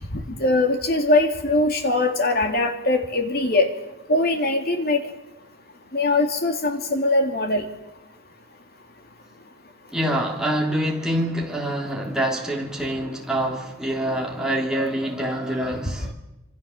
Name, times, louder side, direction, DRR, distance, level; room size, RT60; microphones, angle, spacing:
voice 1, 0.1-3.7 4.1-5.0 5.9-7.6, left 2 dB, 45° left, 3.0 m, -21 dB
voice 2, 9.9-16.1, right 1 dB, 5° right, 3.4 m, -25 dB
26.5 x 25.0 x 7.4 m
head